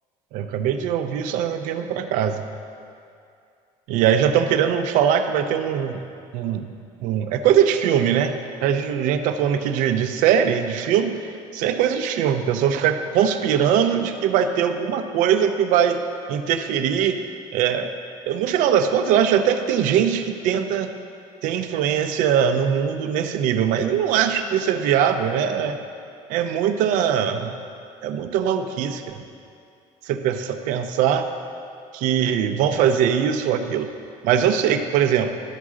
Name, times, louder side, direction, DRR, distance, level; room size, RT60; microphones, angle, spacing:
voice 1, 0.3-2.4 3.9-6.0 6.3-6.7 7.0-8.3 8.6-16.0 16.3-17.2 17.5-17.9 18.3-20.9 21.4-25.8 26.3-27.5 28.0-29.2 30.1-31.3 31.9-33.9 34.2-35.3, right 8 dB, 75° right, 8 dB, 0.6 m, -21 dB
12.0 x 6.2 x 3.7 m, 2.4 s
cardioid pair, 145°, 14 cm